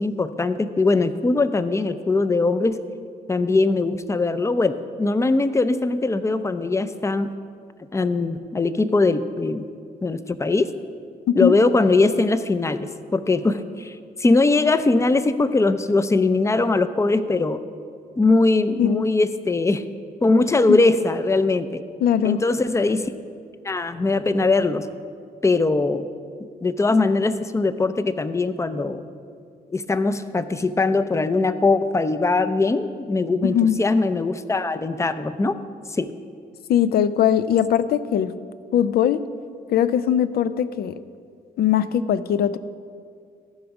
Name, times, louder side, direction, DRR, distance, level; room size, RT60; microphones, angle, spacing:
voice 1, 0.0-2.8 3.3-7.3 7.9-9.7 10.0-10.7 11.4-17.6 18.2-19.8 20.2-21.8 22.2-23.1 23.6-24.9 25.4-26.1 26.6-29.0 29.7-35.6 35.9-36.1, left 3 dB, 15° left, 12 dB, 0.5 m, -21 dB
voice 2, 22.0-22.4 33.4-33.8 36.7-38.3 38.7-39.2 39.7-41.0 41.6-42.6, left 9 dB, 70° left, 14 dB, 0.5 m, -20 dB
14.0 x 5.2 x 5.9 m, 2.2 s
cardioid pair, 85°, 17 cm